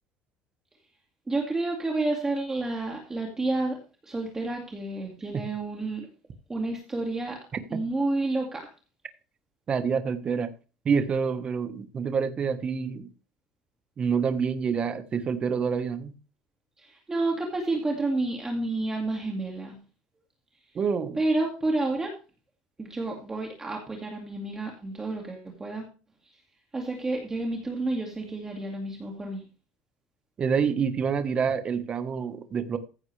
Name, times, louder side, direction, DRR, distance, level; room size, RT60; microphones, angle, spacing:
voice 1, 1.3-3.8 4.0-6.1 6.5-7.4 7.7-8.7 16.8-19.8 21.2-22.1 22.8-25.8 26.2-26.3 26.7-29.4, right 2 dB, 15° right, 2.1 m, -30 dB
voice 2, 9.7-10.5 10.8-13.1 14.0-16.1 20.7-21.2 30.4-32.8, right 6 dB, 30° right, 1.3 m, -27 dB
15.0 x 7.1 x 3.3 m
cardioid pair, 140°, 4 cm